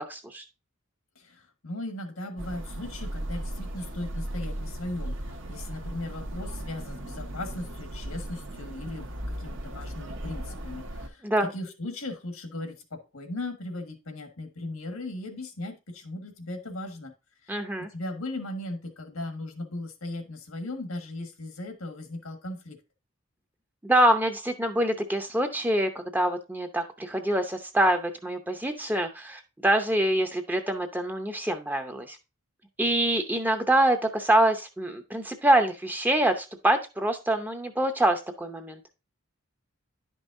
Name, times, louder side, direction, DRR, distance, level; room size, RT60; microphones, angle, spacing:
voice 1, 0.1-0.4 11.2-11.5 17.5-17.9 23.8-32.2 32.8-38.8, right 1 dB, 10° right, 5 dB, 0.6 m, -25 dB
voice 2, 1.1-17.1 17.4-22.8, left 2 dB, 85° left, 5 dB, 1.6 m, -37 dB
sound 1, 2.4-11.1, right 1 dB, 60° right, 1.0 m, -37 dB
10.5 x 5.4 x 2.6 m, 0.27 s
head